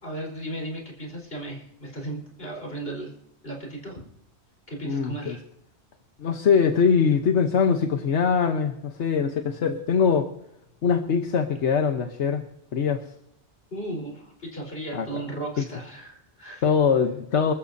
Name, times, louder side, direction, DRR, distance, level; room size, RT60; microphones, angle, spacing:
voice 1, 0.0-3.1 3.4-4.0 4.7-5.4 13.7-16.6, right 1 dB, 60° left, -1 dB, 4.6 m, -35 dB
voice 2, 4.8-5.4 6.2-10.3 10.8-12.4 12.7-13.0 14.9-15.1 15.6-15.7 16.6-17.5, left 6 dB, 85° left, 5 dB, 1.3 m, -22 dB
26.5 x 13.5 x 2.7 m, 0.77 s
omnidirectional pair, 1.1 m